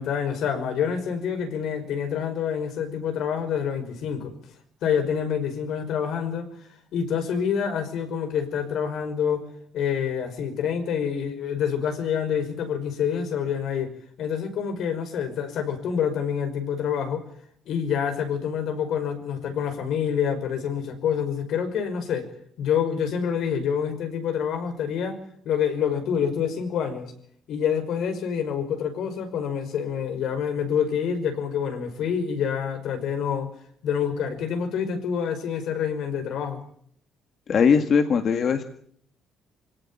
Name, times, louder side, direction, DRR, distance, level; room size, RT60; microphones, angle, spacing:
voice 1, 0.0-4.3 4.8-6.5 6.9-9.5 9.7-13.9 14.2-17.2 17.7-22.3 22.6-25.2 25.5-27.1 27.5-33.5 33.8-36.6, left 7 dB, 70° left, 7 dB, 5.4 m, -27 dB
voice 2, 37.5-38.6, left 6 dB, 45° left, 7 dB, 1.9 m, -20 dB
25.0 x 17.5 x 8.7 m, 0.65 s
cardioid pair, 120°, 0 cm